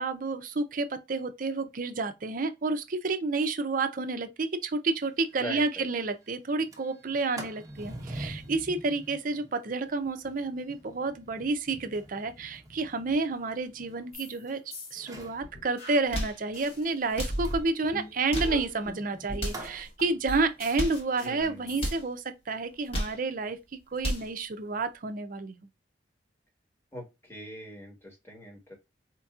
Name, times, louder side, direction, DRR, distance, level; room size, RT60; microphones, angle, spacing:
voice 1, 0.0-14.6 14.9-25.7, right 3 dB, 50° right, 0.6 m, -30 dB
Sliding door, 5.0-5.1 5.4-5.5 5.8-6.1 6.5-14.5 14.9-15.4 17.4-19.8, right 1 dB, 20° right, 0.9 m, -46 dB
voice 2, 5.4-5.9 21.2-21.9 26.9-28.7, equal, 15° left, 1.4 m, -42 dB
sound 1, 14.1-14.4 14.7-16.9 17.3-21.9, equal, 55° left, 2.5 m, -39 dB
sound 2, 15.9-16.4 17.1-17.4 18.1-18.6 19.3-19.7 20.6-21.1 21.7-22.1 22.7-23.2 23.8-24.3, equal, 35° left, 1.3 m, -33 dB
4.4 x 2.8 x 2.4 m
head